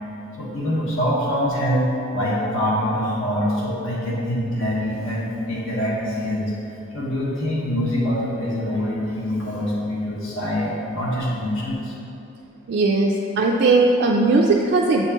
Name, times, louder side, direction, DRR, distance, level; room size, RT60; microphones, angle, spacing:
voice 1, 0.4-1.9 2.1-6.5 6.9-11.9, equal, 75° left, -6 dB, 1.3 m, -24 dB
voice 2, 12.7-15.1, right 3 dB, 55° right, -1 dB, 0.3 m, -18 dB
7.8 x 4.4 x 2.9 m, 2.8 s
head